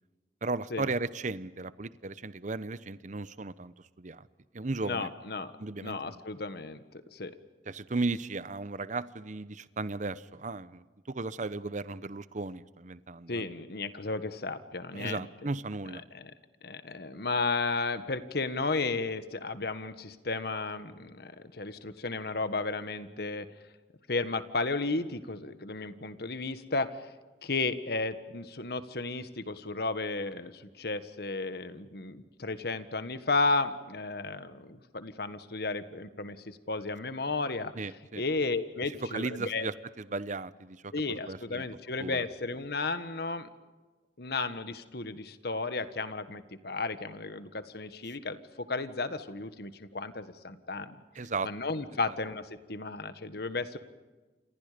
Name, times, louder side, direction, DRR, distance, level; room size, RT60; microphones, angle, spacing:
voice 1, 0.4-4.3 4.5-5.1 5.6-6.2 7.7-13.4 14.9-16.0 37.7-38.2 39.0-41.7 42.0-42.3 51.1-51.5, right 3 dB, 45° right, 16 dB, 0.9 m, -36 dB
voice 2, 4.8-5.5 5.8-7.3 13.3-15.3 16.1-16.3 16.6-23.5 24.1-27.1 27.4-37.7 38.2-39.7 40.9-43.5 44.2-48.4 48.7-51.0 51.4-53.8, left 3 dB, 65° left, 11 dB, 1.6 m, -33 dB
29.5 x 27.0 x 5.2 m, 1.3 s
head